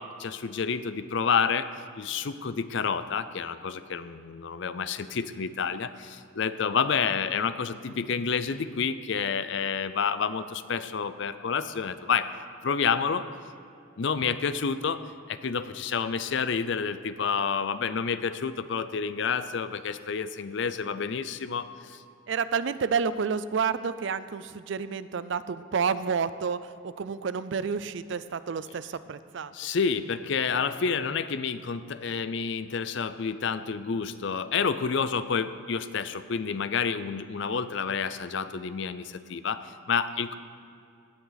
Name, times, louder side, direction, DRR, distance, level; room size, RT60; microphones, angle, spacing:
voice 1, 0.0-1.7 2.0-12.3 12.6-13.3 14.0-15.0 15.3-22.0 29.5-40.3, left 6 dB, 55° left, 13 dB, 0.5 m, -29 dB
voice 2, 22.3-29.5, right 6 dB, 60° right, 14 dB, 0.4 m, -30 dB
16.5 x 9.7 x 4.0 m, 2.5 s
head